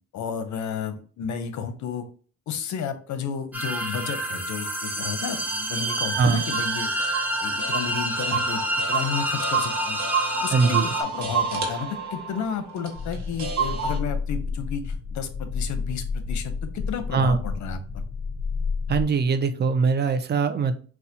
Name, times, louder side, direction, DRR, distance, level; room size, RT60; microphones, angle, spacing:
voice 1, 0.1-2.0 2.5-7.0 7.4-8.6 8.9-10.0 10.4-18.0, left 7 dB, 70° left, 9 dB, 0.7 m, -32 dB
sound 1, 3.5-11.0, right 1 dB, 5° right, 0.8 m, -28 dB
sound 2, 5.5-14.0, right 5 dB, 65° right, 1.0 m, -30 dB
voice 2, 10.5-10.8 17.1-17.4 18.9-20.8, right 5 dB, 35° right, 9 dB, 0.5 m, -21 dB
sound 3, 12.9-19.0, left 5 dB, 25° left, 0.5 m, -30 dB
4.1 x 2.3 x 2.7 m, 0.40 s
cardioid pair, 90°, 30 cm